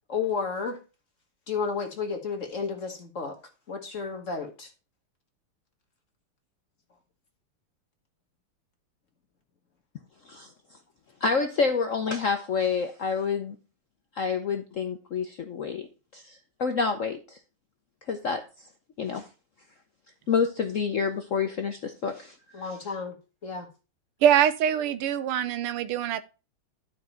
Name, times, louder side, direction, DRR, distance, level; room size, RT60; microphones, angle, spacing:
voice 1, 0.1-0.8 1.5-3.4 3.7-4.7 22.5-23.1 23.4-23.7, left 5 dB, 40° left, 1.4 m, -32 dB
voice 2, 11.2-13.6 14.2-15.9 16.1-17.4 18.1-18.4 19.0-19.2 20.3-22.3, left 5 dB, 70° left, 0.7 m, -28 dB
voice 3, 24.2-26.2, right 10 dB, 85° right, 1.7 m, -23 dB
12.0 x 5.1 x 4.4 m
omnidirectional pair, 2.4 m